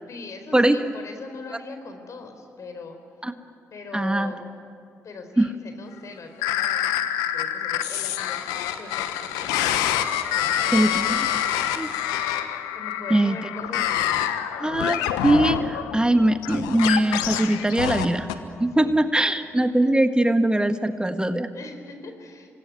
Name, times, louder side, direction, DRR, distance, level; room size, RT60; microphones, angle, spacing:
voice 1, 0.1-3.3 3.7-4.5 5.0-8.4 8.8-9.7 10.3-10.9 12.7-14.3 18.8-19.2 21.5-22.5, left 3 dB, 60° left, 6 dB, 4.2 m, -41 dB
voice 2, 3.9-4.3 5.4-5.5 10.7-11.3 11.5-11.9 13.1-13.4 14.6-18.3 18.6-21.5, right 1 dB, 15° right, 8 dB, 1.5 m, -21 dB
sound 1, 6.4-18.3, left 11 dB, 85° left, 1.1 m, -26 dB
26.0 x 20.5 x 9.7 m, 2.4 s
hypercardioid pair, 40°, 6 cm